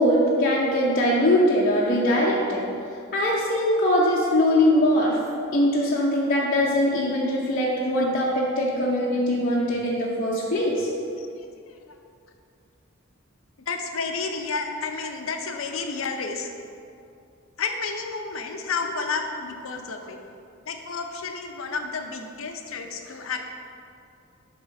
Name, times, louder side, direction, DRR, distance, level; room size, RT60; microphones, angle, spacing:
voice 1, 0.0-2.7 3.1-5.2 5.5-10.9, left 1 dB, 45° left, -6 dB, 0.8 m, -21 dB
voice 2, 11.2-11.8 13.7-16.5 17.6-20.2 20.7-23.4, left 4 dB, 80° left, 4 dB, 0.7 m, -31 dB
7.5 x 3.7 x 5.9 m, 2.5 s
head